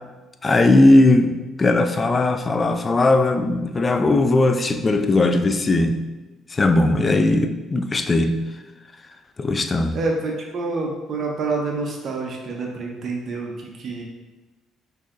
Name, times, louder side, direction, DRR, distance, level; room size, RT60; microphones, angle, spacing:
voice 1, 0.4-6.0 6.5-8.4 9.4-10.0, left 2 dB, 30° left, 8 dB, 0.4 m, -18 dB
voice 2, 9.9-14.0, right 3 dB, 55° right, 0 dB, 0.6 m, -27 dB
5.7 x 2.7 x 2.5 m, 1.2 s
supercardioid pair, 80°, 0 cm